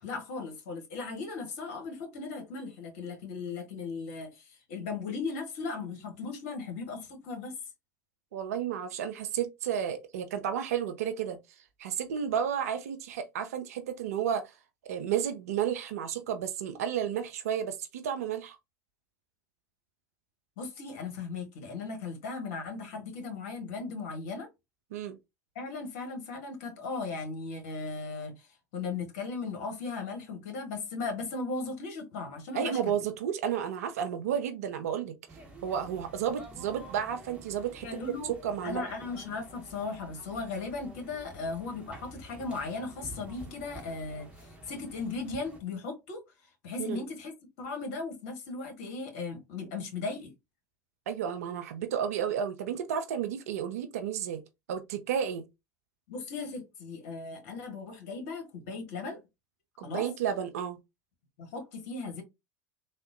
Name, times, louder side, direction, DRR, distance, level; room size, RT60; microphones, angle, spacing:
voice 1, 0.0-7.5 20.6-24.5 25.5-33.0 37.8-38.3 38.6-46.2 46.6-47.3 47.6-50.3 56.1-59.2 59.8-60.1 61.4-62.2, left 4 dB, 60° left, 1.1 m, -37 dB
voice 2, 8.3-11.4 11.8-14.5 14.8-18.6 24.9-25.2 32.5-37.9 38.4-38.8 46.8-47.0 51.1-54.4 54.7-55.4 59.8-60.8, right 8 dB, 65° right, 0.4 m, -32 dB
sound 1, 35.3-45.6, right 1 dB, 15° right, 1.0 m, -49 dB
3.4 x 2.1 x 2.5 m
figure-of-eight pair, 75°, 9 cm